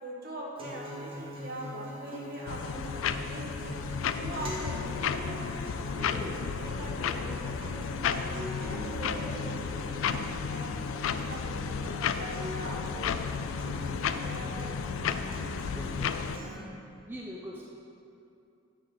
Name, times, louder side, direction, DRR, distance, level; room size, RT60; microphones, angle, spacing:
voice 1, 0.0-3.8 4.1-8.2 8.6-10.7 11.1-15.2, right 1 dB, 50° right, -3 dB, 1.5 m, -42 dB
Acoustic guitar, 0.6-16.6, equal, 25° right, 1.3 m, -42 dB
sound 1, 2.5-16.4, left 6 dB, 75° left, 0.3 m, -33 dB
voice 2, 15.7-16.1 17.1-17.6, equal, 10° right, -4 dB, 0.6 m, -41 dB
9.5 x 4.1 x 6.6 m, 2.6 s
head